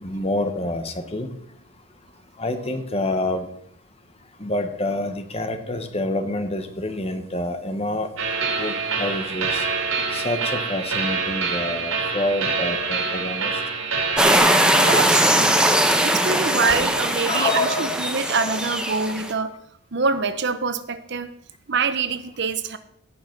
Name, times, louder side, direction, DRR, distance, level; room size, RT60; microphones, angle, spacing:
voice 1, 0.0-1.3 2.4-3.5 4.4-8.1 8.6-8.7 9.0-9.7 10.1-13.5 17.3-17.9 18.4-18.6, left 2 dB, 25° left, 7 dB, 1.2 m, -27 dB
View From Mars, 8.2-14.4, right 4 dB, 80° right, 3.7 m, -26 dB
sound 1, 14.2-19.3, right 1 dB, 5° right, 0.9 m, -20 dB
voice 2, 14.8-15.6 16.0-19.6 19.9-21.3 21.7-22.8, right 4 dB, 50° right, 11 dB, 0.8 m, -25 dB
17.5 x 5.8 x 6.0 m, 0.71 s
head